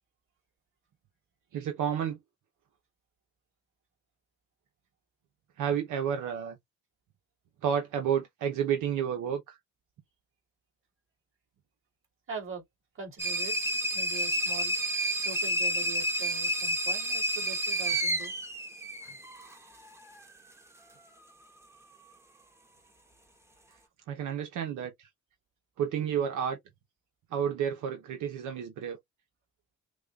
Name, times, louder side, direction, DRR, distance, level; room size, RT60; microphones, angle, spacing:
voice 1, 1.5-2.2 5.6-6.6 7.6-9.6 24.1-25.1 25.8-26.6 27.3-29.0, right 8 dB, 85° right, 1.0 m, -31 dB
voice 2, 12.3-12.6 12.9-13.5 13.9-14.8 15.2-18.3 19.0-19.1, right 5 dB, 45° right, 3.0 m, -42 dB
sound 1, 13.2-19.6, right 1 dB, 10° right, 1.1 m, -30 dB
6.3 x 2.4 x 2.4 m
cardioid pair, 90°, 30 cm